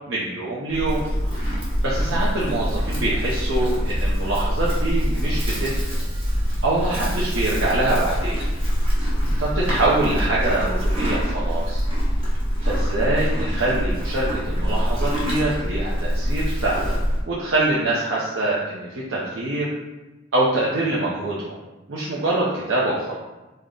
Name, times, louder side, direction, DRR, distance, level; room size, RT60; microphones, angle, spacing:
voice 1, 0.1-1.0 1.8-5.8 6.6-8.4 9.4-11.8 12.6-17.0 17.3-19.7 20.3-21.6 21.9-23.2, right 2 dB, 70° right, -7 dB, 0.6 m, -24 dB
Livestock farm animals working animals, 0.7-17.2, equal, 30° right, 0.8 m, -24 dB
3.4 x 2.1 x 3.7 m, 1.1 s
head